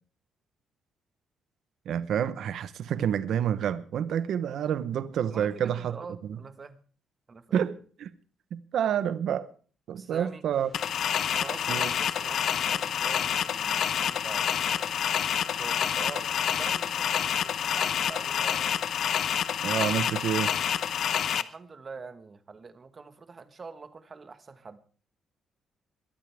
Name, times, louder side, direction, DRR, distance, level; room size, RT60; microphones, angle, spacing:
voice 1, 1.9-6.0 7.5-8.1 8.5-9.5 9.9-10.7 11.7-11.9 19.6-20.5, right 9 dB, 60° right, 0.8 m, -28 dB
voice 2, 5.3-6.8 7.3-7.6 9.9-10.4 11.3-14.9 15.4-18.9 21.3-24.8, right 4 dB, 25° right, 1.3 m, -44 dB
sound 1, 10.5-16.7, equal, 5° right, 3.8 m, -58 dB
sound 2, 10.7-21.4, left 9 dB, 55° left, 0.7 m, -28 dB
21.5 x 13.5 x 3.4 m
cardioid pair, 175°, 0 cm